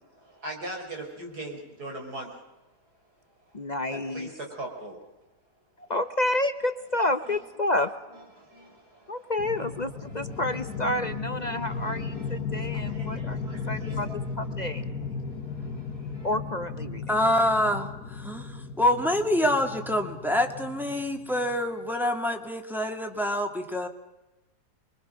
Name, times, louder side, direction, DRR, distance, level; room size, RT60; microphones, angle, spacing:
voice 1, 0.0-2.3 3.9-5.0 7.3-7.4 7.7-7.8 8.4-9.3 9.6-10.5 11.5-16.3, right 1 dB, 70° right, 1 dB, 5.5 m, -42 dB
voice 2, 3.5-4.3 5.9-7.9 9.1-14.1 14.4-14.8 16.2-17.2, left 1 dB, 35° left, 10 dB, 0.8 m, -29 dB
sound 1, 9.4-21.6, left 4 dB, 65° left, 2.1 m, -36 dB
voice 3, 17.1-23.9, left 1 dB, ahead, 2 dB, 2.2 m, -26 dB
28.0 x 23.0 x 6.4 m, 1.0 s
omnidirectional pair, 1.7 m